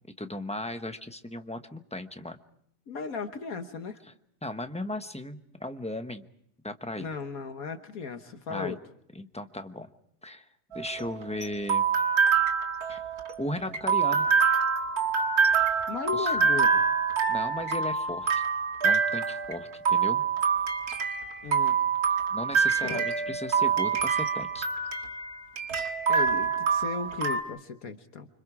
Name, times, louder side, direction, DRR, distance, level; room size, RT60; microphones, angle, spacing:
voice 1, 0.2-2.4 4.4-6.2 6.6-7.1 8.5-8.8 9.1-9.9 10.2-10.4 10.7-11.9 12.9-13.0 13.4-14.3 16.1-16.3 17.3-18.4 18.8-20.2 22.3-24.7, left 1 dB, 5° left, 7 dB, 0.8 m, -36 dB
voice 2, 2.9-4.0 7.0-8.8 15.9-16.8 21.4-21.8 22.8-23.4 26.1-28.3, left 5 dB, 65° left, 7 dB, 1.6 m, -36 dB
sound 1, 10.7-27.4, right 6 dB, 75° right, 2.2 m, -26 dB
29.5 x 26.0 x 4.8 m, 0.72 s
omnidirectional pair, 1.6 m